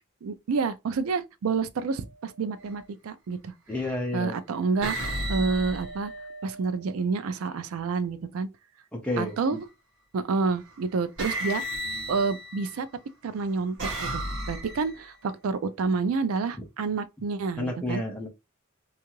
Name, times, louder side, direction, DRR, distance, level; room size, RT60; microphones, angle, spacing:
voice 1, 0.2-3.5 4.1-6.1 6.4-8.5 9.2-9.6 10.1-11.6 12.1-12.9 13.2-13.8 14.0-18.0, right 4 dB, 85° right, 0.4 m, -29 dB
sound 1, 2.5-2.8 3.7-4.2 4.8-6.9 9.1-9.6 10.7-10.8 11.2-12.8 13.4-15.1, right 1 dB, 60° right, 1.1 m, -34 dB
voice 2, 3.7-4.4 8.9-9.6 17.6-18.3, left 1 dB, 5° left, 0.6 m, -30 dB
2.7 x 2.4 x 2.8 m
head